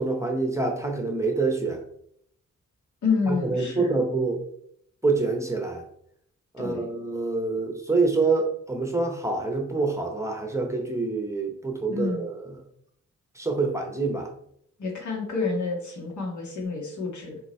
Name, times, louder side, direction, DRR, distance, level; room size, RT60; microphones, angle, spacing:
voice 1, 0.0-1.8 3.3-4.4 5.0-5.8 6.5-12.6 13.4-14.3, right 3 dB, 10° right, 3 dB, 0.9 m, -26 dB
voice 2, 3.0-4.0 6.6-6.9 11.9-12.2 14.8-17.4, left 4 dB, 75° left, 0 dB, 1.9 m, -28 dB
6.7 x 3.6 x 4.3 m, 0.71 s
wide cardioid pair, 155°, 29 cm